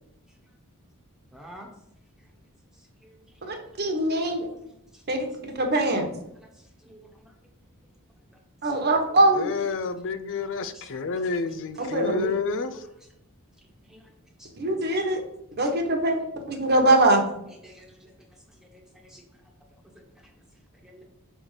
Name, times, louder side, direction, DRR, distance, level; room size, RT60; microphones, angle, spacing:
voice 1, 1.3-1.7 3.0-3.5 4.1-4.2 4.6-5.0 6.4-6.5 6.8-7.3 8.6-8.8 10.4-11.0 11.7-11.9 13.9-14.0 14.4-14.5 15.6-15.7 16.5-16.6 17.6-18.1 18.6-19.2 20.8-21.0, equal, ahead, 0 dB, 1.2 m, -51 dB
voice 2, 3.5-4.5 5.1-5.2 5.6-6.1 8.6-9.5 11.9-12.3 14.6-15.2 15.6-16.2 16.5-17.2, right 1 dB, 45° right, 3 dB, 1.2 m, -22 dB
voice 3, 9.3-12.8, left 4 dB, 60° left, 11 dB, 0.5 m, -29 dB
6.1 x 3.5 x 5.6 m, 0.80 s
head